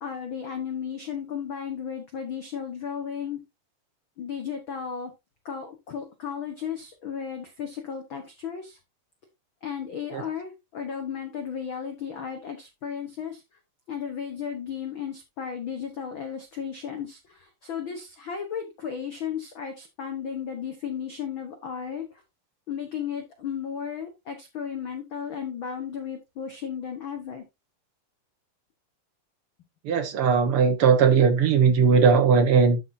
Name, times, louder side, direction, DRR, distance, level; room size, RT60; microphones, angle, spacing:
voice 1, 0.0-3.4 4.2-5.1 5.4-8.8 9.6-13.4 13.9-22.2 22.7-27.4, left 7 dB, 70° left, 1.1 m, -34 dB
voice 2, 29.8-32.8, right 5 dB, 60° right, 1.6 m, -19 dB
12.0 x 6.1 x 2.7 m
omnidirectional pair, 4.0 m